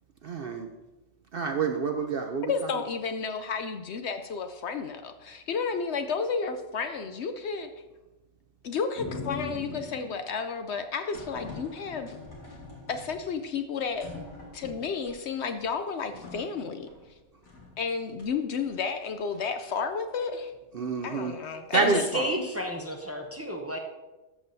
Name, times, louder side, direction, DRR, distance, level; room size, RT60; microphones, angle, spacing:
voice 1, 0.2-0.7 1.3-2.5 20.7-21.4 21.7-22.3, right 4 dB, 60° right, 5 dB, 0.6 m, -28 dB
voice 2, 2.5-7.7 8.6-12.2 12.9-14.1 14.5-16.9 17.8-20.5 21.0-22.1, left 5 dB, 65° left, 8 dB, 0.8 m, -32 dB
sound 1, 9.0-10.3 11.1-13.5 13.9-15.1 15.6-15.7 16.0-17.1 17.4-17.8 18.2-18.7, left 3 dB, 90° left, 2.5 m, -42 dB
voice 3, 21.7-23.8, equal, 15° right, 2 dB, 0.5 m, -31 dB
13.5 x 7.1 x 2.7 m, 1.1 s
omnidirectional pair, 1.4 m